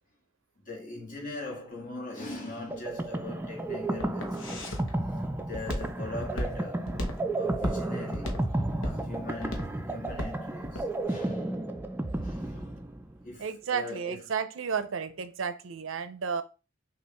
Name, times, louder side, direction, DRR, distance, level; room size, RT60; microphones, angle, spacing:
voice 1, 0.7-4.7 5.5-7.0 7.3-11.5 12.1-12.8 13.2-14.2, left 2 dB, 45° left, 1.7 m, -41 dB
sound 1, 2.7-13.2, right 2 dB, 10° right, 0.3 m, -33 dB
Walk footsteps, 2.8-10.9, left 1 dB, 85° left, 0.9 m, -36 dB
voice 2, 13.4-16.4, right 6 dB, 85° right, 0.5 m, -32 dB
5.5 x 2.4 x 3.0 m
head